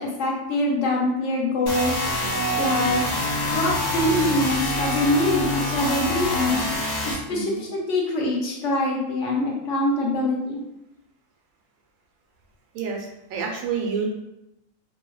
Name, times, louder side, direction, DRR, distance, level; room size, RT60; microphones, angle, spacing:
voice 1, 0.0-2.1 2.5-3.0 3.5-6.6 7.0-10.6, left 1 dB, 70° left, -1 dB, 0.9 m, -24 dB
sound 1, 1.7-7.1, left 1 dB, 55° left, 0.5 m, -26 dB
sound 2, 2.2-6.3, right 3 dB, 60° right, 0.6 m, -41 dB
voice 2, 7.3-7.6 12.7-14.1, right 5 dB, 85° right, 1 dB, 1.0 m, -29 dB
2.7 x 2.1 x 2.3 m, 0.86 s
omnidirectional pair, 1.4 m